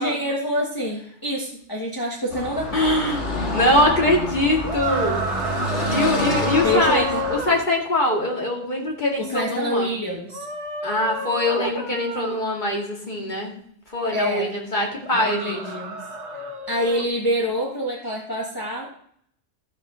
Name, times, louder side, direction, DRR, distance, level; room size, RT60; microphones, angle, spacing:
voice 1, 0.0-2.8 6.6-7.2 9.1-10.4 14.1-14.5 15.1-16.0 16.3-18.9, equal, 20° left, -3 dB, 1.4 m, -26 dB
Car passing by / Traffic noise roadway noise, 2.3-7.4, left 1 dB, 80° left, 2.2 m, -28 dB
voice 2, 2.7-3.2 3.5-5.3 5.9-9.9 10.8-13.5 13.9-15.6, left 1 dB, 40° left, -1 dB, 2.5 m, -23 dB
sound 1, 4.6-7.6 10.3-12.4 15.0-17.1, right 1 dB, 70° right, 1.7 m, -30 dB
13.0 x 5.2 x 6.3 m, 0.66 s
omnidirectional pair, 1.2 m